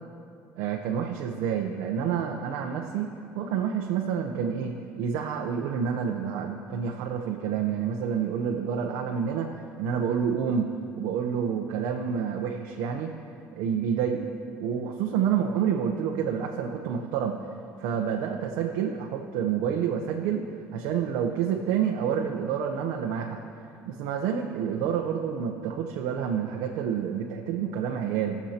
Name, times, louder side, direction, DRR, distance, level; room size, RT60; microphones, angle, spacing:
voice 1, 0.6-3.1 3.3-9.5 9.8-13.1 13.5-14.3 14.6-17.4 17.8-20.4 20.7-23.4 23.9-28.4, right 7 dB, 80° right, 2 dB, 0.8 m, -28 dB
21.5 x 7.2 x 2.9 m, 2.4 s
cardioid pair, 125°, 7 cm